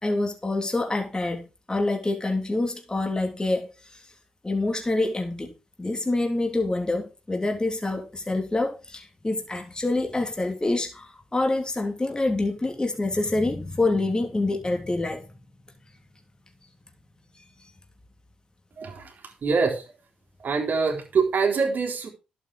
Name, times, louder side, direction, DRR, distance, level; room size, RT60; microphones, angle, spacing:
voice 1, 0.0-3.7 4.4-5.5 5.8-15.2, left 2 dB, 25° left, 3 dB, 3.2 m, -26 dB
voice 2, 18.8-20.0 20.4-22.1, right 5 dB, 60° right, 3 dB, 3.9 m, -25 dB
11.5 x 8.4 x 4.8 m, 0.29 s
hypercardioid pair, 40°, 3 cm